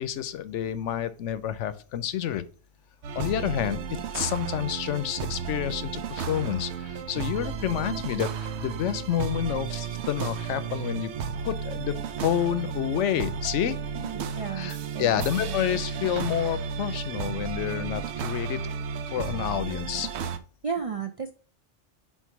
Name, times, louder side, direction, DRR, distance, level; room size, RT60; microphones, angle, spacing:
voice 1, 0.0-2.5 3.2-3.8 4.1-11.1 11.4-13.8 14.6-18.6 19.1-20.1, left 10 dB, 80° left, 14 dB, 1.0 m, -29 dB
sound 1, 3.0-20.4, right 6 dB, 70° right, 0.9 m, -33 dB
voice 2, 13.9-15.6 20.6-21.3, right 6 dB, 55° right, 6 dB, 0.3 m, -34 dB
4.5 x 4.3 x 5.7 m, 0.37 s
omnidirectional pair, 1.2 m